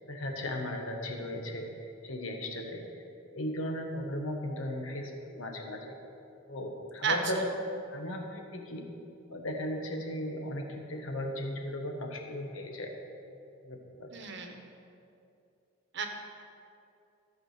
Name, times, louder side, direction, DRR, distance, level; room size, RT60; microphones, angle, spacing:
voice 1, 0.0-5.9 6.5-7.5 7.9-8.8 9.3-12.9 13.6-14.1, left 1 dB, 90° left, 2 dB, 1.3 m, -37 dB
voice 2, 14.1-14.6 15.9-16.1, right 6 dB, 60° right, 4 dB, 1.1 m, -31 dB
13.5 x 4.8 x 6.6 m, 2.6 s
head